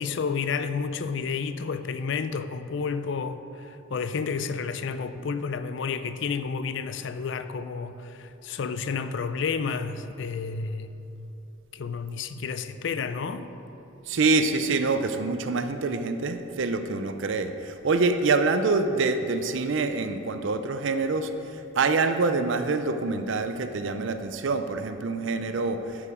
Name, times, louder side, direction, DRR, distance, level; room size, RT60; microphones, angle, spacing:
voice 1, 0.0-10.9 11.7-13.5, left 5 dB, 60° left, 11 dB, 0.4 m, -31 dB
voice 2, 14.1-21.3 21.8-26.1, right 3 dB, 65° right, 9 dB, 0.5 m, -26 dB
12.0 x 4.9 x 4.9 m, 2.9 s
head